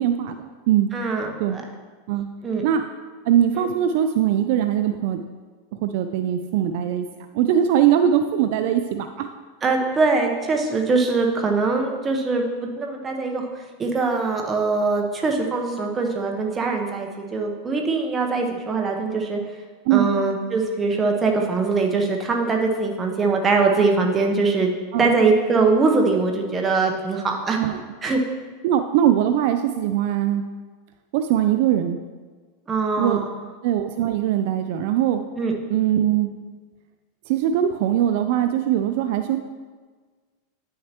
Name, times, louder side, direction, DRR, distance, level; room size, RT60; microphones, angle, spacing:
voice 1, 0.0-0.9 1.4-1.6 2.1-2.3 2.6-2.8 3.3-5.2 5.8-7.1 7.3-9.3 19.9-20.1 24.9-25.2 27.6-27.8 28.6-30.4 31.1-32.0 33.0-33.2 33.6-35.2 35.7-36.3 37.3-39.4, right 10 dB, 60° right, 7 dB, 0.4 m, -21 dB
voice 2, 0.9-1.6 2.4-2.6 3.5-3.7 9.6-13.5 13.8-19.4 19.9-24.7 25.0-27.6 28.0-28.2 32.7-33.4 35.4-35.5, right 4 dB, 20° right, 2 dB, 1.1 m, -22 dB
9.7 x 6.5 x 2.9 m, 1.4 s
supercardioid pair, 130°, 0 cm